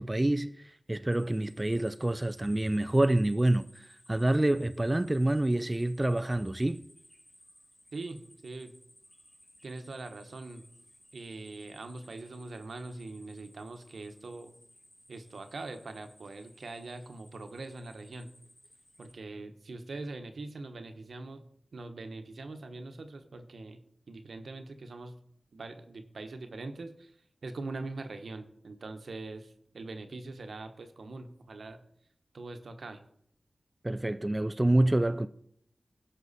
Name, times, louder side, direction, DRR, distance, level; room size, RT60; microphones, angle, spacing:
voice 1, 0.0-6.8 33.8-35.3, right 1 dB, 20° right, 0.4 m, -27 dB
sound 1, 1.1-19.1, equal, 25° left, 4.0 m, -60 dB
voice 2, 7.9-8.7 9.6-10.7 11.1-14.5 15.1-18.3 19.0-21.5 21.7-23.8 24.1-25.2 25.5-27.2 27.4-31.8 32.3-33.0, right 3 dB, 75° right, 1.0 m, -42 dB
16.0 x 6.2 x 4.1 m
cardioid pair, 55°, 0 cm